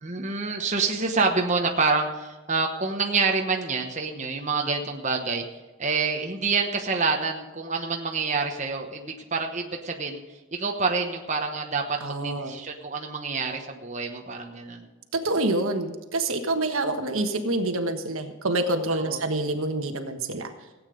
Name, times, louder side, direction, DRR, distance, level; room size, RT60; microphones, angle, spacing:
voice 1, 0.0-5.4 5.8-10.2 10.5-14.9 18.9-19.2, right 4 dB, 35° right, 2 dB, 1.1 m, -27 dB
voice 2, 12.0-12.6 15.2-20.5, right 2 dB, 75° right, 5 dB, 1.4 m, -27 dB
16.0 x 8.8 x 5.1 m, 1.2 s
head